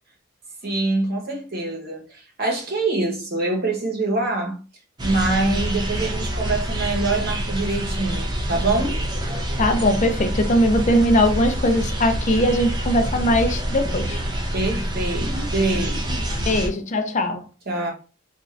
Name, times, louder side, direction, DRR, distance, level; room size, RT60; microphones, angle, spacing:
voice 1, 0.6-4.6 5.0-9.0 14.5-16.2 17.7-17.9, right 2 dB, 50° right, 1.0 m, -25 dB
sound 1, 5.0-16.7, right 1 dB, 20° right, 0.6 m, -26 dB
voice 2, 9.6-14.2 16.5-17.4, equal, 35° left, 0.5 m, -20 dB
3.6 x 2.5 x 3.2 m
head